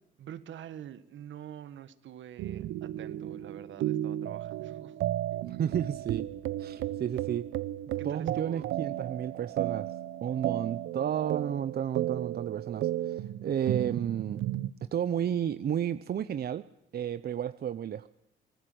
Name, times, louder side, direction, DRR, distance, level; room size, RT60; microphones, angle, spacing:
voice 1, 0.2-5.0 8.0-8.7, right 10 dB, 70° right, 12 dB, 1.7 m, -45 dB
sound 1, 2.4-14.7, right 14 dB, 85° right, 0.8 m, -34 dB
voice 2, 5.4-6.3 6.6-7.5 8.0-9.9 10.2-14.4 14.9-16.6 16.9-18.1, right 9 dB, 50° right, 13 dB, 0.8 m, -32 dB
25.0 x 19.5 x 8.0 m, 0.85 s
cardioid pair, 90°, 20 cm